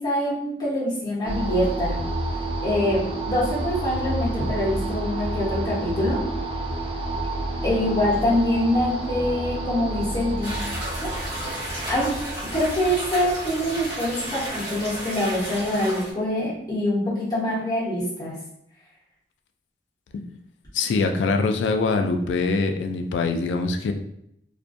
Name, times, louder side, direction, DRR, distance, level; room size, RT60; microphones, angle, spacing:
voice 1, 0.0-2.0 2.6-3.0 3.3-6.2 7.6-10.5 10.9-11.1 11.9-12.1 12.5-18.3, left 1 dB, 25° left, -8 dB, 1.0 m, -24 dB
sound 1, 1.3-15.4, right 2 dB, 30° right, 0.3 m, -30 dB
sound 2, 10.4-16.1, right 1 dB, 50° right, 1.4 m, -33 dB
voice 2, 20.7-23.9, left 3 dB, 90° left, 5 dB, 0.3 m, -23 dB
2.5 x 2.2 x 2.5 m, 0.75 s
head